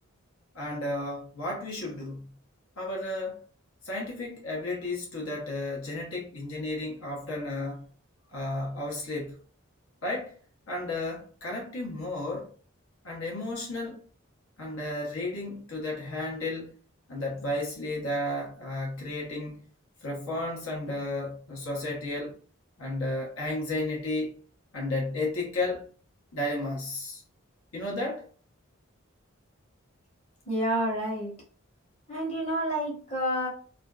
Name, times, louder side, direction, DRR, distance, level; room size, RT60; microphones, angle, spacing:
voice 1, 0.5-2.4 2.8-3.4 3.8-7.8 8.3-9.4 10.0-10.3 10.7-12.5 13.0-14.0 14.6-16.7 17.1-19.6 20.0-22.4 22.8-24.4 24.7-25.9 26.3-27.2 27.7-28.3, left 2 dB, 75° left, 0.8 m, -33 dB
voice 2, 30.5-31.3 32.1-33.5, right 1 dB, 30° left, 1.0 m, -29 dB
2.5 x 2.2 x 2.2 m
head